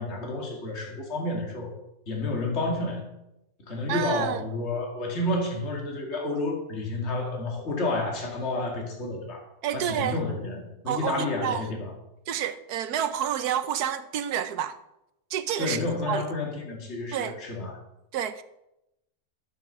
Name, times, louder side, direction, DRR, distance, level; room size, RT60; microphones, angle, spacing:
voice 1, 0.0-1.7 2.1-3.0 3.7-9.4 9.7-11.9 15.6-17.8, left 2 dB, 40° left, 2.3 m, -30 dB
voice 2, 3.9-4.4 9.6-10.2 10.9-11.6 12.3-14.8 15.3-16.2 17.1-17.4 18.1-18.4, right 9 dB, 75° right, 1.2 m, -29 dB
12.5 x 6.1 x 6.6 m
omnidirectional pair, 1.7 m